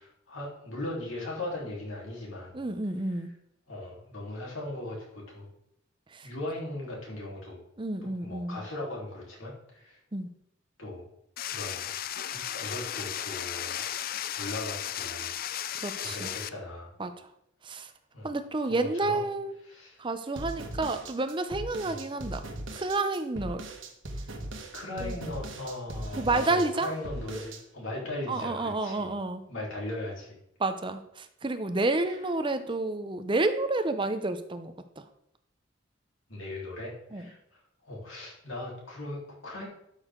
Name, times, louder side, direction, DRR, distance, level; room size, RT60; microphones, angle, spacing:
voice 1, 0.0-2.5 3.1-3.2 3.7-5.5 6.2-7.6 8.2-10.0 10.8-11.0 11.5-11.9 12.3-13.8 14.4-15.3 16.0-16.9 18.1-18.3 18.6-19.2 19.6-20.0 21.8-22.0 24.7-29.2 29.5-30.4 36.3-39.7, left 1 dB, 85° left, -3 dB, 3.7 m, -38 dB
voice 2, 2.5-3.3 6.1-6.3 7.8-8.6 10.1-10.3 15.8-16.3 17.0-17.1 17.7-17.9 18.2-19.6 20.0-22.4 22.7-23.6 25.0-25.1 26.2-26.9 28.3-29.4 30.6-34.7 37.1-37.2, right 2 dB, 25° right, 9 dB, 0.6 m, -30 dB
sound 1, 11.4-16.5, left 10 dB, 45° left, 0.4 m, -35 dB
sound 2, 20.4-27.6, right 1 dB, 80° right, 1.5 m, -39 dB
12.5 x 6.4 x 3.8 m, 0.77 s
head